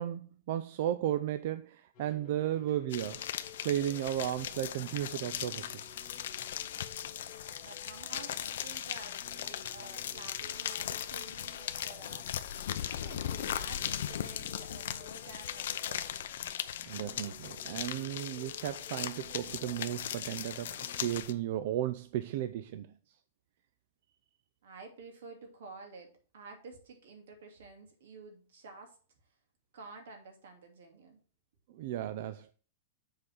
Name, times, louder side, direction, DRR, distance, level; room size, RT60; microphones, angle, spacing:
voice 1, 0.0-3.3 3.6-5.9 16.9-20.7 21.0-22.9 31.7-32.5, right 12 dB, 45° right, 0.4 m, -34 dB
sound 1, 1.9-21.4, left 7 dB, 25° left, 1.9 m, -56 dB
sound 2, 2.9-21.3, left 10 dB, 65° left, 0.6 m, -38 dB
voice 2, 7.6-16.1 24.6-29.0 29.7-31.2, right 4 dB, 75° right, 2.6 m, -51 dB
7.6 x 4.1 x 6.4 m
supercardioid pair, 175°, 0 cm